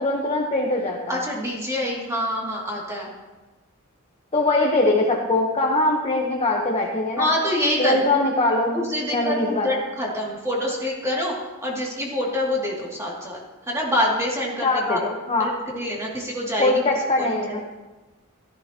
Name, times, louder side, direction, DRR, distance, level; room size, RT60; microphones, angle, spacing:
voice 1, 0.0-1.2 4.3-7.3 7.8-8.8 9.1-9.8 14.6-15.5 16.6-17.6, left 2 dB, 25° left, -1 dB, 1.3 m, -22 dB
voice 2, 1.1-3.1 7.2-8.1 8.7-11.3 11.6-13.4 13.7-15.0 15.4-16.7 17.2-17.8, left 1 dB, 15° right, -4 dB, 2.8 m, -26 dB
14.5 x 14.0 x 3.1 m, 1.2 s
head